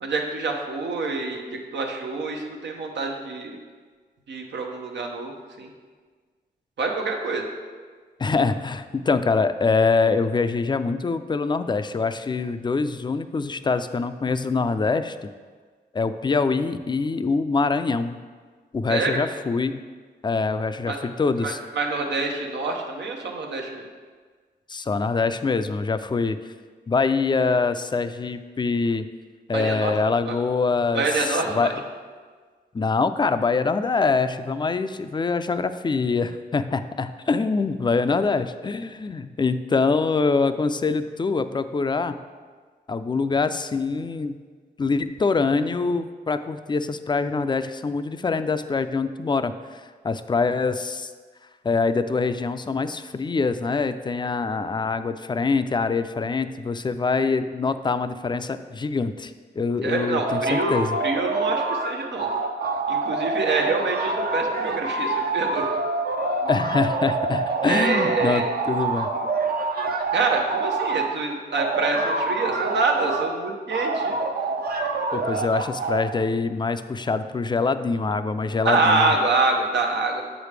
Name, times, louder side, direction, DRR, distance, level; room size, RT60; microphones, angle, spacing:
voice 1, 0.0-3.6 4.3-5.7 6.8-7.5 18.9-19.2 20.9-21.0 21.4-23.8 29.5-29.9 30.3-30.4 30.9-31.7 59.8-60.8 61.0-62.3 62.9-65.7 67.6-68.5 70.1-74.2 78.6-80.2, right 3 dB, 85° right, 1 dB, 0.8 m, -26 dB
voice 2, 8.2-15.2 15.9-18.2 18.7-19.8 20.2-21.6 24.7-26.4 26.9-29.1 29.5-31.7 32.7-42.2 42.9-44.4 44.8-51.1 51.6-61.0 66.5-69.1 75.1-79.1, left 4 dB, 25° left, 11 dB, 0.3 m, -24 dB
sound 1, 60.3-61.9 62.2-71.1 71.5-73.3 73.7-76.0, right 3 dB, 60° right, 0.6 m, -26 dB
7.2 x 5.0 x 3.3 m, 1.5 s
cardioid pair, 55°, 18 cm